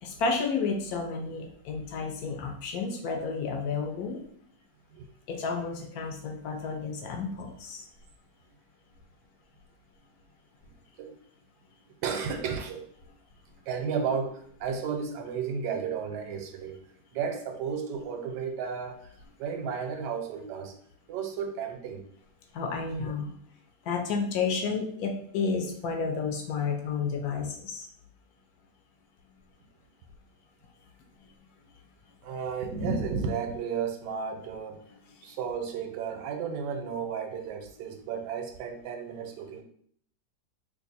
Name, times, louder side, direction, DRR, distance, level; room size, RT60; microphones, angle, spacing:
voice 1, 0.0-4.2 5.3-7.8 22.5-23.3 23.9-27.9, left 5 dB, 70° left, 3 dB, 1.0 m, -31 dB
voice 2, 12.0-12.9 13.7-16.8 17.1-19.1 19.4-20.7 21.1-22.0 23.0-23.1 32.2-34.8 35.2-39.6, right 6 dB, 85° right, 5 dB, 1.2 m, -33 dB
3.0 x 2.4 x 3.9 m, 0.62 s
omnidirectional pair, 1.8 m